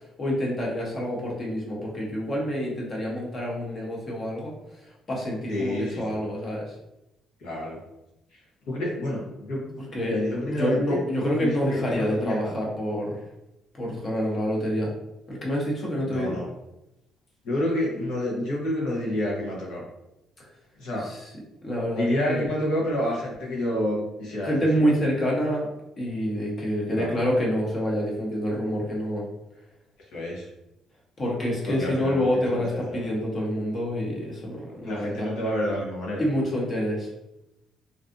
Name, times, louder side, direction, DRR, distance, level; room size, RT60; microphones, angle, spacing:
voice 1, 0.2-4.5 4.8-6.7 9.9-10.1 10.5-13.2 13.8-14.9 15.3-16.4 21.0-21.2 21.6-22.5 24.4-25.7 26.0-29.2 31.2-35.3 36.2-37.1, equal, 35° left, -3 dB, 0.8 m, -27 dB
voice 2, 5.5-6.2 7.4-7.8 8.7-9.7 10.0-11.0 11.4-12.6 16.1-16.5 17.4-19.8 20.8-21.1 21.9-24.9 26.9-27.2 30.1-30.5 31.7-33.0 34.8-36.2, left 1 dB, 85° left, -3 dB, 0.9 m, -29 dB
2.6 x 2.3 x 2.5 m, 0.90 s
cardioid pair, 125°, 0 cm